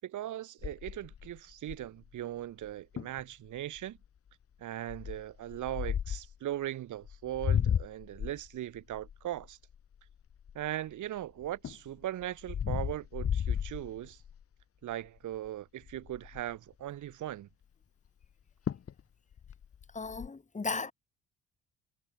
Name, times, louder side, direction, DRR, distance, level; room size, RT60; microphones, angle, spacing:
voice 1, 0.0-4.0 4.6-9.6 10.5-14.2 14.8-17.5, right 13 dB, 80° right, 6.7 m, -39 dB
sound 1, 0.6-2.1 2.6-2.7 3.0-3.2 3.8-4.1 4.9-6.4 7.0-10.9 11.4-14.4 14.9-15.2 15.5-15.6 15.8-16.6 18.2-18.3 18.7-19.0 19.3-20.3, left 8 dB, 50° left, 1.7 m, -34 dB
voice 2, 19.9-20.9, left 4 dB, 25° left, 3.0 m, -35 dB
cardioid pair, 90°, 30 cm